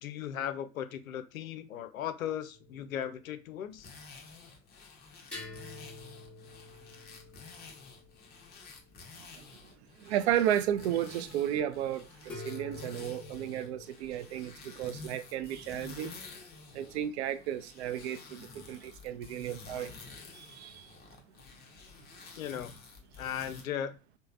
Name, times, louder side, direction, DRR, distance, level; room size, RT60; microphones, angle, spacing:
voice 1, 0.0-3.9 22.4-22.7 23.2-24.0, left 9 dB, 75° left, 0.5 m, -37 dB
sound 1, 2.5-3.7 5.3-9.0 10.5-10.7 12.3-13.8, left 2 dB, 5° left, 1.0 m, -48 dB
sound 2, 3.7-23.6, left 4 dB, 25° left, 0.7 m, -51 dB
voice 2, 10.0-16.1 16.7-19.9 20.3-20.9, right 11 dB, 55° right, 0.4 m, -33 dB
3.1 x 2.1 x 2.4 m
figure-of-eight pair, 95°, 41 cm